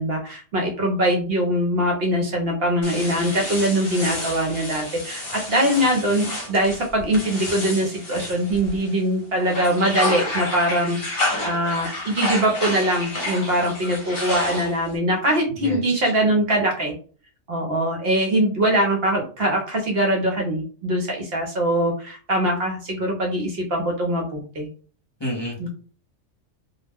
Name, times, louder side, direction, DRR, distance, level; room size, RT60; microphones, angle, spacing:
voice 1, 0.0-16.9 17.5-24.7 25.6-25.7, right 1 dB, 60° right, 0 dB, 0.8 m, -22 dB
sound 1, 2.8-9.0 9.4-15.0, left 2 dB, 60° left, 0.9 m, -30 dB
voice 2, 15.6-16.0 25.2-25.7, equal, 25° left, -5 dB, 0.7 m, -30 dB
2.3 x 2.0 x 3.4 m, 0.41 s
omnidirectional pair, 1.3 m